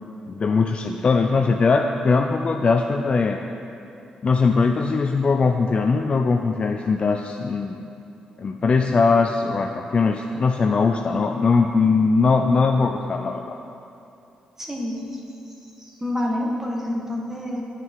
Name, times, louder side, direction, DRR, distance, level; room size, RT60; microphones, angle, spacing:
voice 1, 0.3-3.4 4.2-7.9 8.4-13.6, left 4 dB, 45° left, 4 dB, 0.5 m, -20 dB
voice 2, 14.6-15.2 15.8-17.6, left 1 dB, 15° right, -2 dB, 1.6 m, -28 dB
9.5 x 7.6 x 4.7 m, 2.7 s
supercardioid pair, 60°, 3 cm